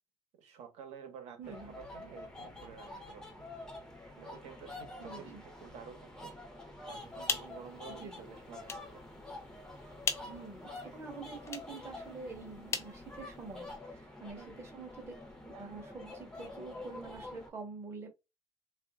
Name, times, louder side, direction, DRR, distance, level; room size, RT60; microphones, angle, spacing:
voice 1, 0.3-3.5 4.2-6.3 6.8-9.0 14.3-14.8, right 7 dB, 60° right, 1.1 m, -51 dB
sound 1, 1.4-17.5, left 2 dB, 5° left, 0.7 m, -48 dB
voice 2, 1.4-1.7 5.0-5.4 8.0-8.2 10.2-15.1 15.4-18.1, right 4 dB, 20° right, 0.9 m, -46 dB
sound 2, 7.0-13.8, left 5 dB, 20° left, 0.4 m, -42 dB
3.5 x 2.5 x 2.3 m
cardioid pair, 175°, 12 cm